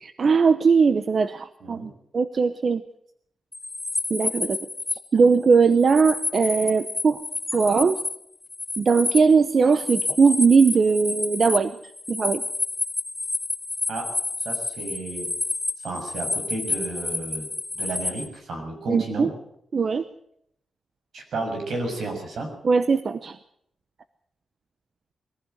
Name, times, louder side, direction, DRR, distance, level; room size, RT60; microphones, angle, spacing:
voice 1, 0.0-2.8 4.1-4.6 5.1-7.2 7.5-8.0 8.8-11.7 12.1-12.4 18.9-19.3 19.7-20.0 22.6-23.4, right 5 dB, 40° right, 12 dB, 0.8 m, -20 dB
sound 1, 3.5-5.0 5.3-8.2 8.4-18.3, left 2 dB, 15° left, 1.4 m, -30 dB
voice 2, 14.4-15.3 15.8-17.5 17.7-19.3 21.1-22.5, right 2 dB, 70° right, 4 dB, 6.9 m, -32 dB
21.5 x 15.5 x 8.1 m, 0.72 s
wide cardioid pair, 165°, 0 cm